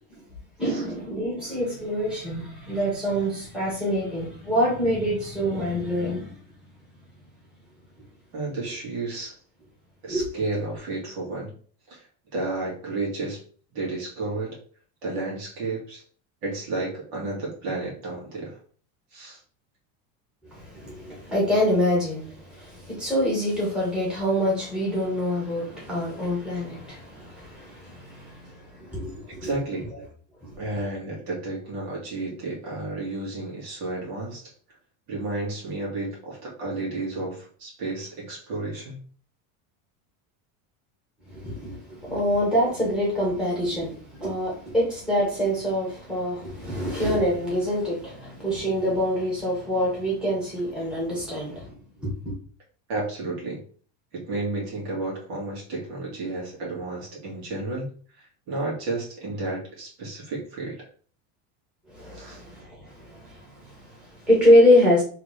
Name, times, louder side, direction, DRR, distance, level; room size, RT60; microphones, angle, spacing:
voice 1, 0.6-6.3 10.1-10.3 20.5-29.5 30.4-30.5 41.3-52.3 61.9-65.0, equal, ahead, -6 dB, 2.0 m, -25 dB
voice 2, 8.3-9.4 10.0-11.5 11.9-12.0 12.3-13.4 13.7-14.6 15.0-16.0 16.4-18.6 19.1-19.4 29.3-29.9 30.6-34.4 35.1-39.0 52.9-53.6 54.1-57.9 58.2-60.8 62.1-62.4, right 2 dB, 55° right, -3 dB, 2.1 m, -32 dB
3.7 x 3.3 x 3.2 m, 0.43 s
cardioid pair, 155°, 43 cm